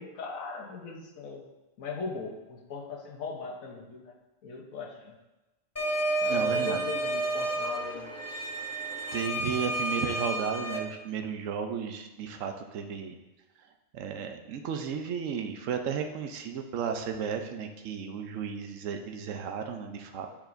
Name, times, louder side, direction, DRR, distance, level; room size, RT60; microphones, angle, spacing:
voice 1, 0.0-1.4 1.8-4.1 4.4-5.2 6.2-8.1, left 4 dB, 85° left, 1 dB, 1.3 m, -39 dB
sound 1, 5.8-10.8, right 1 dB, 25° left, 0.3 m, -31 dB
voice 2, 6.3-6.9 9.1-13.2 13.9-20.3, right 7 dB, 75° right, 5 dB, 1.0 m, -34 dB
10.5 x 4.9 x 2.6 m, 1.1 s
omnidirectional pair, 1.4 m